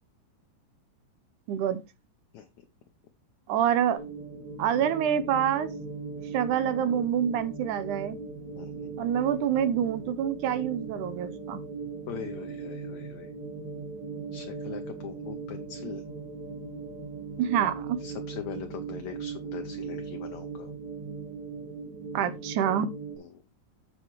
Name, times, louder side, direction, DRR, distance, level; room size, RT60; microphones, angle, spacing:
voice 1, 1.5-1.8 3.5-4.0 4.6-5.7 6.3-8.2 9.0-11.6 17.4-18.0 22.1-22.9, right 9 dB, 75° right, 2.2 m, -26 dB
sound 1, 4.0-23.2, right 4 dB, 55° right, 5.3 m, -39 dB
voice 2, 8.6-9.0 12.1-13.3 14.3-16.0 18.0-20.7 23.2-23.4, left 9 dB, 70° left, 1.9 m, -41 dB
14.0 x 5.9 x 3.1 m
omnidirectional pair, 3.9 m